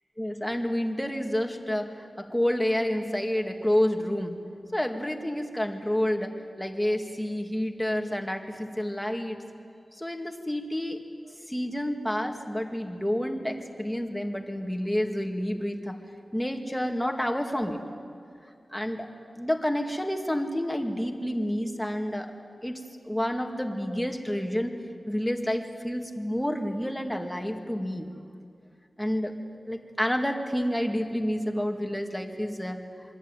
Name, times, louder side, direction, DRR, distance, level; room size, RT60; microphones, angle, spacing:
voice 1, 0.2-4.3 4.7-9.4 10.0-11.0 11.5-16.0 16.3-17.8 18.7-19.1 19.4-22.3 22.6-24.8 25.1-28.1 29.0-29.3 29.7-32.8, equal, 5° left, 3 dB, 2.3 m, -29 dB
27.0 x 23.5 x 9.2 m, 2.4 s
wide cardioid pair, 105°, 0 cm